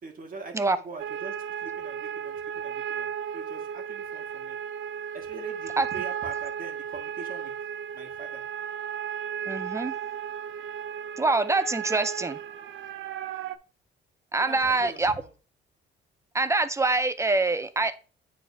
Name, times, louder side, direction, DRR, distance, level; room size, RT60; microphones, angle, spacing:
voice 1, 0.0-3.1 3.3-4.6 5.1-7.5 7.9-8.4 14.4-15.3, right 4 dB, 45° right, 2 dB, 2.0 m, -43 dB
sound 1, 1.0-13.6, right 8 dB, 75° right, 0.5 m, -35 dB
voice 2, 9.5-10.0 11.2-12.4 14.3-15.1 16.3-18.0, right 3 dB, 15° right, 12 dB, 0.6 m, -25 dB
9.1 x 4.2 x 2.8 m, 0.36 s
cardioid pair, 90°, 20 cm